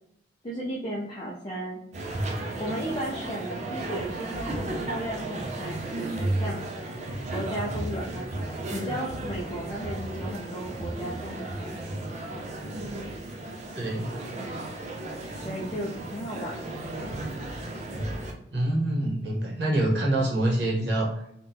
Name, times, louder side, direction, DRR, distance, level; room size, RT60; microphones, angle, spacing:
voice 1, 0.4-1.8 2.6-7.0 7.3-11.8 15.4-16.8, right 1 dB, 25° left, -5 dB, 0.5 m, -35 dB
sound 1, 1.9-18.3, right 1 dB, 40° right, 0.5 m, -34 dB
voice 2, 13.7-14.1 18.5-21.1, right 1 dB, 70° right, -3 dB, 1.1 m, -25 dB
3.8 x 2.2 x 2.6 m, 0.76 s
head